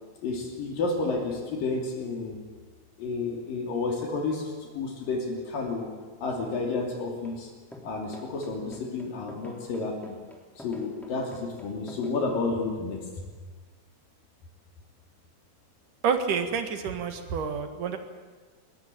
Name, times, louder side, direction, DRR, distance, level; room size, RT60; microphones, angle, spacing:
voice 1, 0.2-2.4 3.0-5.9 6.2-7.5 7.8-10.2 10.6-13.2, left 3 dB, 70° left, 1 dB, 4.5 m, -31 dB
sound 1, 7.2-7.4 7.7-12.1, left 1 dB, ahead, 3.2 m, -47 dB
voice 2, 16.0-18.0, right 6 dB, 65° right, 7 dB, 3.2 m, -28 dB
22.0 x 20.0 x 9.3 m, 1.4 s
omnidirectional pair, 4.1 m